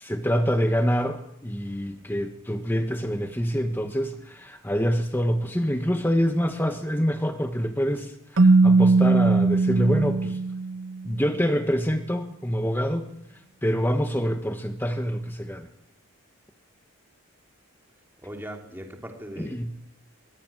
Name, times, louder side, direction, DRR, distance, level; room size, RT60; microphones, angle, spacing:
voice 1, 0.0-10.4 11.0-13.1 13.6-15.7 19.4-19.8, equal, 10° left, 6 dB, 1.4 m, -26 dB
Keyboard (musical), 8.4-11.1, right 3 dB, 65° right, 1.0 m, -19 dB
voice 2, 18.2-19.8, equal, 10° right, 2 dB, 3.6 m, -40 dB
24.5 x 22.0 x 9.2 m, 0.84 s
head